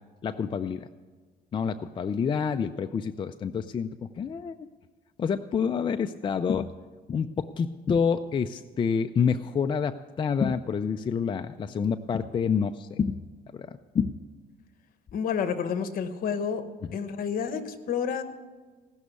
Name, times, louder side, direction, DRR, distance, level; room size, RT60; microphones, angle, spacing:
voice 1, 0.2-0.9 1.5-4.6 5.2-6.7 7.1-13.2 13.5-14.2, left 6 dB, 30° left, 9 dB, 0.4 m, -28 dB
voice 2, 15.1-16.6 16.9-18.2, left 7 dB, 55° left, 10 dB, 1.1 m, -29 dB
16.5 x 6.3 x 8.2 m, 1.4 s
cardioid pair, 110°, 17 cm